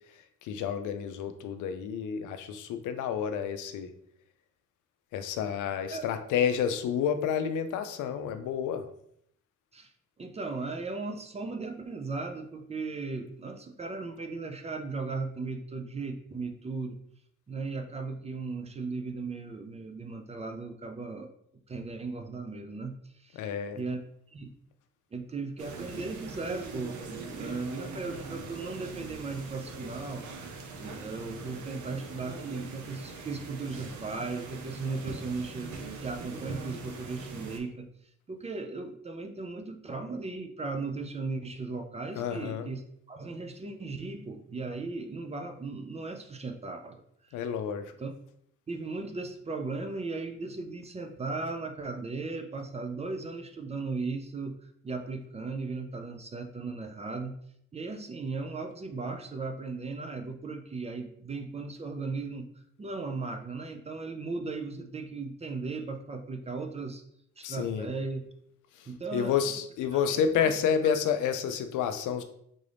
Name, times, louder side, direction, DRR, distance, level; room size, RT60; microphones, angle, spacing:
voice 1, 0.1-3.9 5.1-8.9 23.3-23.8 42.1-42.7 47.3-47.9 67.4-67.9 68.7-72.2, left 7 dB, 80° left, 8 dB, 0.5 m, -30 dB
voice 2, 10.2-17.0 17.5-21.3 21.7-23.5 23.7-24.0 24.3-24.5 25.1-30.3 30.8-35.7 36.0-37.9 38.3-42.8 43.1-47.4 48.0-48.1 48.7-54.6 54.8-57.4 57.7-62.5 62.8-67.0 67.4-68.2 68.9-69.4 69.9-70.5, right 3 dB, 20° right, 5 dB, 0.4 m, -37 dB
sound 1, 25.6-37.6, right 3 dB, 75° right, 0.7 m, -42 dB
3.7 x 2.5 x 3.3 m, 0.69 s
cardioid pair, 90°, 30 cm